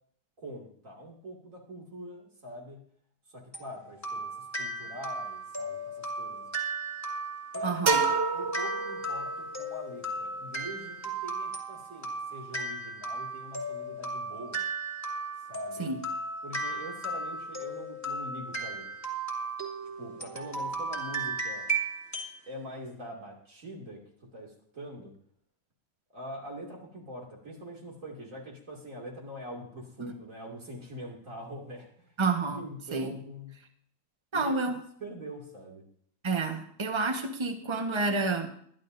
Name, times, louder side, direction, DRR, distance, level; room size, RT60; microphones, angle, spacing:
voice 1, 0.4-2.8 3.3-4.3 4.6-6.4 7.5-14.6 15.5-15.9 16.4-18.9 20.0-21.6 22.5-24.0 24.3-25.1 26.1-32.1 32.5-33.5 34.3-34.6 35.0-35.8, equal, 45° right, 2.8 m, -43 dB
sound 1, 3.5-22.4, right 2 dB, 10° left, 2.3 m, -36 dB
voice 2, 7.6-8.0 15.8-16.1 30.0-30.1 32.2-32.6 32.9-33.1 34.3-34.8 36.2-38.5, right 3 dB, 20° right, 1.1 m, -29 dB
sound 2, 7.9-9.6, right 5 dB, 80° right, 2.1 m, -28 dB
22.5 x 11.5 x 2.6 m
omnidirectional pair, 1.9 m